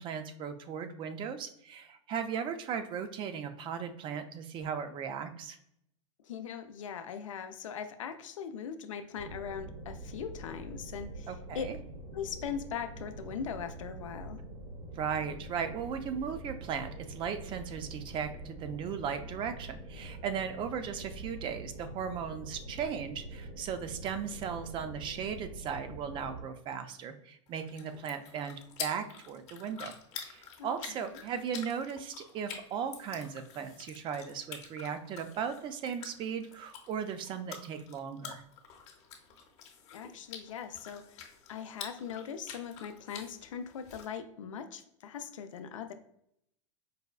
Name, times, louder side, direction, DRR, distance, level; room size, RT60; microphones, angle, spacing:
voice 1, 0.0-5.6 11.3-11.8 15.0-29.9 30.2-38.4, right 7 dB, 30° right, 9 dB, 0.4 m, -37 dB
voice 2, 6.2-11.7 12.1-14.4 30.6-31.2 39.9-45.9, left 7 dB, 90° left, 8 dB, 0.4 m, -40 dB
sound 1, 9.1-26.4, right 2 dB, 70° right, 1.2 m, -45 dB
sound 2, 27.5-44.1, left 7 dB, 40° left, 0.8 m, -48 dB
4.8 x 2.2 x 2.3 m, 0.73 s
hypercardioid pair, 115°, 16 cm